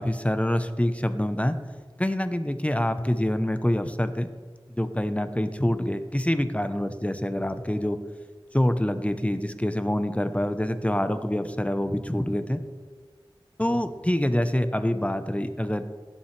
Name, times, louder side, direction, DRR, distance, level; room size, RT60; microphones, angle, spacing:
voice 1, 0.0-1.5 2.0-4.3 4.8-8.0 8.5-12.6 13.6-15.8, left 1 dB, 15° left, 9 dB, 0.7 m, -26 dB
16.5 x 7.2 x 3.3 m, 1.5 s
wide cardioid pair, 45°, 9 cm